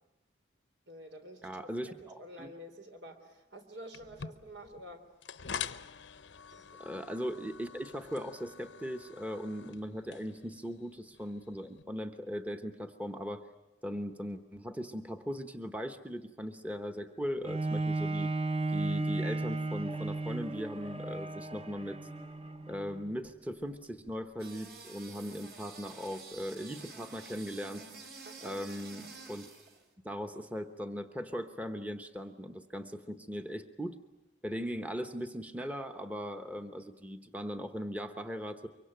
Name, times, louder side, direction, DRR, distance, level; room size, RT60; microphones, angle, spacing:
voice 1, 0.9-5.0 6.6-6.7 28.3-28.5, equal, 80° right, 6 dB, 3.8 m, -49 dB
voice 2, 1.4-2.5 6.8-13.4 13.8-18.3 18.7-22.0 22.7-27.9 28.4-29.5 30.0-34.0 34.4-38.7, equal, 10° right, 6 dB, 0.9 m, -39 dB
sound 1, 3.9-11.8, left 7 dB, 90° left, 0.9 m, -46 dB
Bowed string instrument, 17.4-23.1 23.7-23.8, right 2 dB, 30° right, 1.0 m, -34 dB
sound 2, 24.4-29.8, right 4 dB, 60° right, 4.3 m, -49 dB
24.0 x 24.0 x 9.1 m, 0.97 s
head